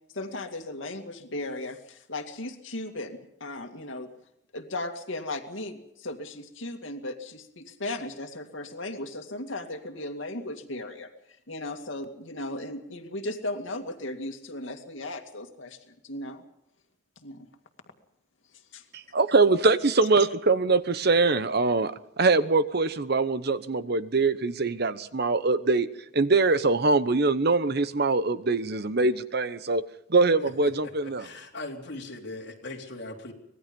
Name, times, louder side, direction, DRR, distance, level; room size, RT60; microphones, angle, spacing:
voice 1, 0.1-4.1 4.5-11.1 11.5-16.4 17.2-17.5 18.7-18.8, left 2 dB, 90° left, 5 dB, 2.3 m, -36 dB
voice 2, 18.9-25.9 26.1-29.8 30.1-31.3, right 3 dB, 55° right, 13 dB, 1.0 m, -23 dB
voice 3, 31.0-33.3, left 2 dB, 65° left, -1 dB, 3.9 m, -39 dB
25.0 x 19.5 x 5.4 m, 0.77 s
head